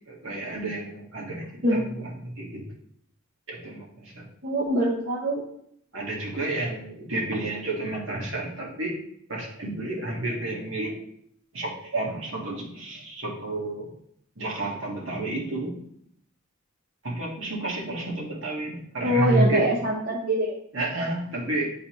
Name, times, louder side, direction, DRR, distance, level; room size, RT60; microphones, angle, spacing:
voice 1, 0.1-2.7 3.5-4.2 5.9-9.0 9.3-11.0 11.5-13.9 14.4-15.8 17.0-19.8 20.7-21.7, right 2 dB, 70° right, -3 dB, 1.7 m, -30 dB
voice 2, 4.4-5.4 19.0-20.6, right 1 dB, 45° right, -3 dB, 0.8 m, -24 dB
8.6 x 3.9 x 3.1 m, 0.71 s
head